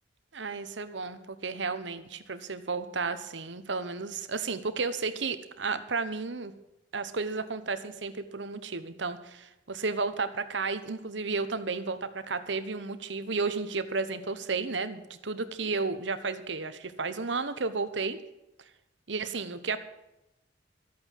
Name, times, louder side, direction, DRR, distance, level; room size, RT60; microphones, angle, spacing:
voice 1, 0.3-6.5 6.9-18.2 19.1-19.8, right 4 dB, 75° right, 11 dB, 1.1 m, -33 dB
13.5 x 8.7 x 7.5 m, 0.92 s
head